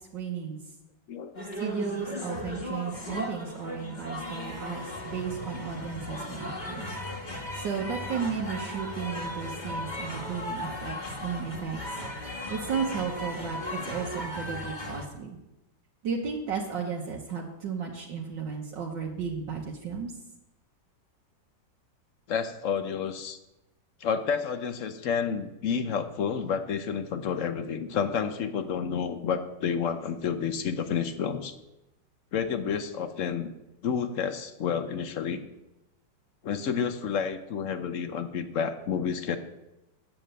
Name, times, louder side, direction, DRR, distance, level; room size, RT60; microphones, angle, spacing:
voice 1, 0.1-0.6 1.6-7.0 7.5-11.9 12.5-15.4 16.0-20.1, right 6 dB, 75° right, -2 dB, 1.8 m, -34 dB
voice 2, 1.1-1.4 22.3-23.4 24.0-31.5 32.3-33.5 33.8-35.4 36.4-39.4, left 7 dB, 60° left, 9 dB, 0.9 m, -30 dB
sound 1, 1.3-15.1, left 1 dB, 25° left, 1.2 m, -36 dB
9.1 x 6.9 x 7.6 m, 0.95 s
omnidirectional pair, 2.0 m